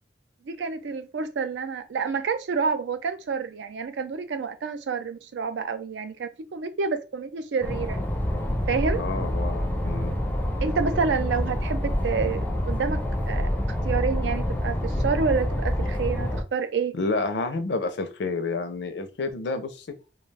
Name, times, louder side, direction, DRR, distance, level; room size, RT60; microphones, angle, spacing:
voice 1, 0.5-8.0 8.7-9.0 10.6-13.5 13.8-17.0, right 5 dB, 75° right, 0.4 m, -28 dB
sound 1, 7.6-16.4, left 1 dB, 10° left, 0.4 m, -27 dB
voice 2, 8.9-10.2 16.9-19.9, left 3 dB, 70° left, 0.5 m, -29 dB
2.3 x 2.2 x 3.2 m
head